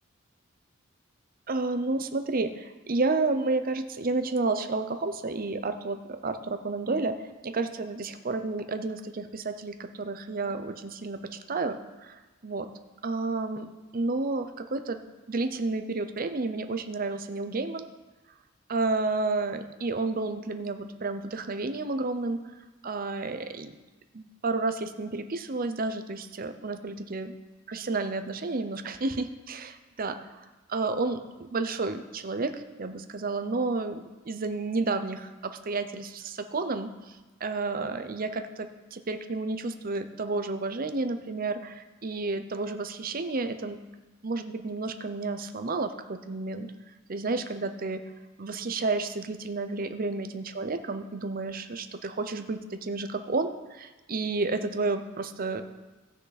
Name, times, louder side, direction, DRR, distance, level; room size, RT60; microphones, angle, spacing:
voice 1, 1.5-7.2 7.4-12.7 13.0-13.7 13.9-15.0 15.3-17.9 18.7-22.4 22.8-23.7 24.1-27.3 27.7-30.3 30.7-36.9 37.4-43.8 44.2-46.7 47.1-48.0 48.4-55.6, right 3 dB, 45° right, 8 dB, 0.7 m, -31 dB
16.5 x 6.1 x 4.1 m, 1.2 s
head